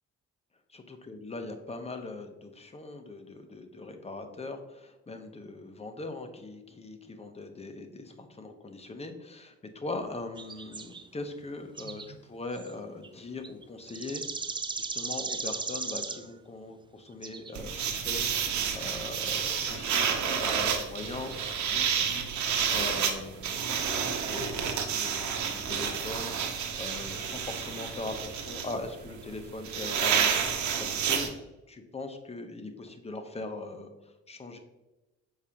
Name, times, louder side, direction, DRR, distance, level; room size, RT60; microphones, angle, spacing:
voice 1, 0.7-14.5 14.8-21.3 21.7-22.3 22.7-24.6 24.9-31.4 31.7-34.6, left 2 dB, 20° left, 6 dB, 0.9 m, -41 dB
sound 1, 10.4-11.1 11.6-12.2 12.5-12.7 13.0-13.1 13.4-16.3 17.1-17.5 17.8-18.0 19.1-19.8 20.6-20.8 21.3-21.6, right 4 dB, 15° right, 0.4 m, -37 dB
sound 2, 17.6-31.3, right 7 dB, 70° right, 1.0 m, -30 dB
6.7 x 4.8 x 2.9 m, 1.0 s
cardioid pair, 90°, 30 cm